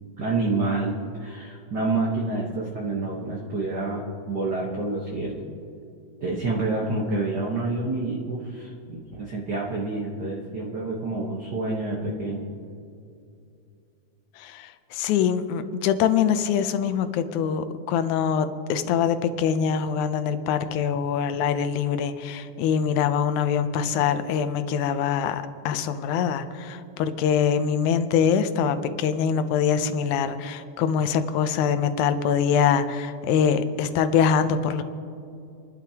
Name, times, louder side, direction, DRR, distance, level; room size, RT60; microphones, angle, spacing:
voice 1, 0.2-5.5 6.2-12.5, right 2 dB, 55° right, -3 dB, 1.2 m, -28 dB
voice 2, 14.4-34.8, left 7 dB, 75° left, 10 dB, 2.0 m, -24 dB
29.0 x 12.0 x 2.9 m, 2.5 s
omnidirectional pair, 3.7 m